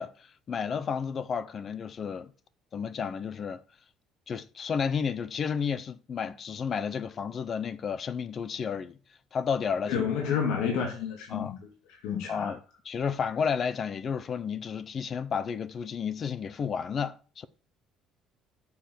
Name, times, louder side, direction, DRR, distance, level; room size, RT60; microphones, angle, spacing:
voice 1, 0.0-2.3 2.7-3.6 4.3-9.0 9.3-10.0 11.3-11.6 12.3-12.6 12.8-17.5, left 6 dB, 35° left, 0.6 m, -32 dB
voice 2, 9.9-11.6 12.0-12.5, left 7 dB, 80° left, 2.3 m, -29 dB
7.1 x 6.7 x 7.6 m
cardioid pair, 150°, 0 cm